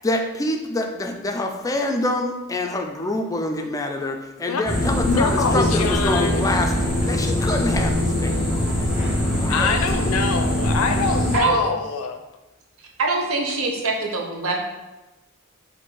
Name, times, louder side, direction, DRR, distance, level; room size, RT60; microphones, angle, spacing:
voice 1, 0.0-8.9 9.4-9.7, left 2 dB, 15° left, 4 dB, 0.3 m, -26 dB
sound 1, 4.7-11.4, left 1 dB, 5° right, 1.1 m, -22 dB
voice 2, 5.0-6.5 9.5-12.2, left 5 dB, 80° left, 7 dB, 0.5 m, -24 dB
voice 3, 13.0-14.6, right 3 dB, 75° right, 0 dB, 0.8 m, -23 dB
4.3 x 2.6 x 4.5 m, 1.1 s
head